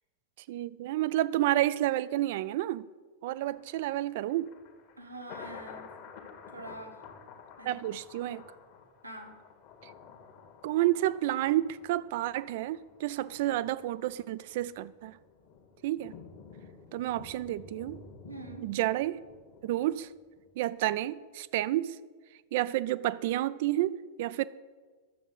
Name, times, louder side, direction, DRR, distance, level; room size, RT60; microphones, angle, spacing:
voice 1, 0.5-2.9 3.2-4.5 7.6-8.4 9.8-9.9 10.6-15.2 15.8-16.1 16.9-18.0 18.6-19.2 19.6-20.1 20.6-22.0 22.5-24.4, right 14 dB, 50° right, 0.4 m, -30 dB
Thunder, 3.4-20.5 20.9-21.0, left 6 dB, 45° left, 1.7 m, -51 dB
voice 2, 5.0-5.9 6.5-7.0 7.6-7.8 9.0-9.4 18.3-18.7, right 2 dB, 85° right, 1.6 m, -44 dB
11.0 x 7.2 x 7.9 m
figure-of-eight pair, 90°, 0 cm